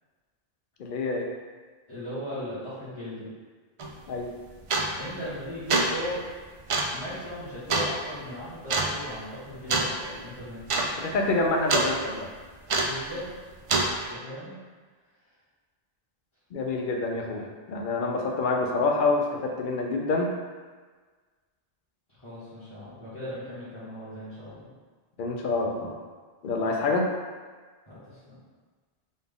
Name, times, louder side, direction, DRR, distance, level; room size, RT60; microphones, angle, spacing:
voice 1, 0.8-1.3 4.1-4.3 11.0-12.3 16.5-20.3 25.2-26.0 26.4-27.1, left 3 dB, 60° left, 1 dB, 0.7 m, -27 dB
voice 2, 1.9-3.3 5.0-6.2 6.9-10.6 12.8-13.3 14.1-14.5 22.1-24.6 27.9-28.4, equal, 30° left, -15 dB, 1.3 m, -38 dB
sound 1, 3.8-3.9 4.7-5.1 5.5-6.0 6.7-7.0 7.7-7.9 8.7-8.9 9.7-9.9 10.2-10.3 10.6-10.9 11.2-11.9 12.7-13.0 13.7-13.9, right 3 dB, 60° right, 0.3 m, -25 dB
4.2 x 2.4 x 3.4 m, 1.4 s
omnidirectional pair, 1.0 m